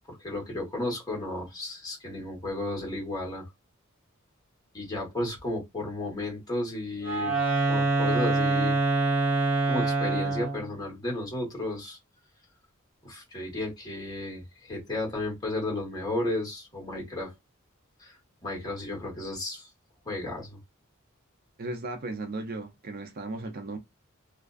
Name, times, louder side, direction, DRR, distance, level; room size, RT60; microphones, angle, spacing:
voice 1, 0.1-3.5 4.7-7.4 7.7-8.8 9.7-12.0 13.0-17.3 18.0-18.1 18.4-19.7 20.0-20.6, left 2 dB, 20° left, 1.1 m, -33 dB
Wind instrument woodwind instrument, 7.0-10.7, right 3 dB, 10° right, 1.1 m, -25 dB
voice 2, 21.6-23.8, right 2 dB, 45° right, 0.4 m, -36 dB
2.4 x 2.3 x 2.3 m
head